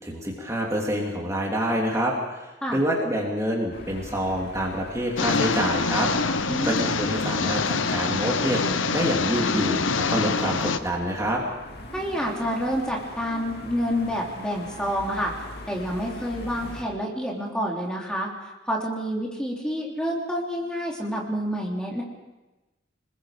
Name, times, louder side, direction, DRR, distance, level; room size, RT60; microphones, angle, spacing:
voice 1, 0.0-6.1 6.6-8.6 8.9-11.4, equal, 15° right, -2 dB, 2.9 m, -27 dB
sound 1, 3.7-16.8, left 1 dB, 55° left, 2.5 m, -42 dB
sound 2, 5.2-10.8, left 4 dB, 85° left, 0.9 m, -25 dB
voice 2, 6.5-6.9 11.9-15.3 15.7-22.0, equal, 5° left, -2 dB, 3.2 m, -28 dB
28.5 x 21.0 x 5.1 m, 1.1 s
head